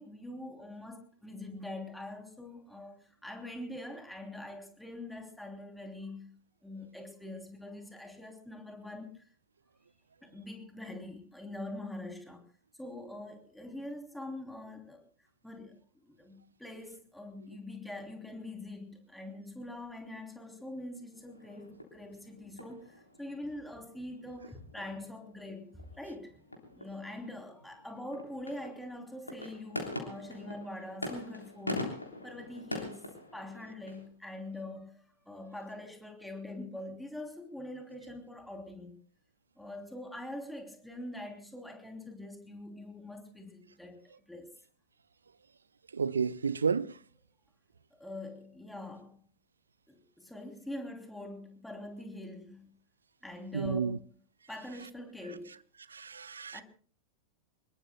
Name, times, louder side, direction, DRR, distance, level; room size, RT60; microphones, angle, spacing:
voice 1, 0.0-6.3 6.6-9.3 10.2-12.4 12.8-15.0 15.4-26.4 26.7-31.9 32.2-39.0 39.6-44.5 47.9-49.2 49.9-52.8 53.2-54.0 54.5-55.6 56.5-56.6, left 1 dB, 5° left, 3.0 m, -44 dB
sound 1, 21.1-34.1, left 1 dB, 85° left, 3.4 m, -44 dB
voice 2, 45.9-46.9 53.5-54.0 55.9-56.6, right 5 dB, 75° right, 0.6 m, -31 dB
26.0 x 21.0 x 2.2 m
figure-of-eight pair, 90°, 0 cm